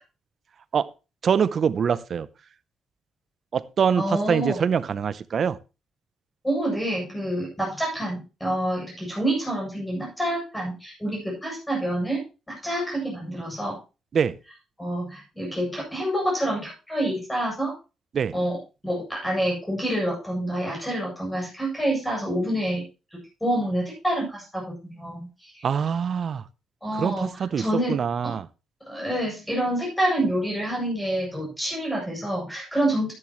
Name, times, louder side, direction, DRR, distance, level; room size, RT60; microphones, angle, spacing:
voice 1, 1.2-2.3 3.5-5.6 14.1-14.4 18.1-18.3 25.6-26.4 26.9-28.5, right 7 dB, 50° right, 0.6 m, -24 dB
voice 2, 4.0-4.6 6.4-12.2 12.5-13.8 14.8-17.7 18.3-18.6 18.8-22.8 23.4-25.7 26.8-28.3 28.9-33.1, right 1 dB, 10° left, 7.9 m, -27 dB
13.0 x 10.5 x 3.1 m
cardioid pair, 90°, 0 cm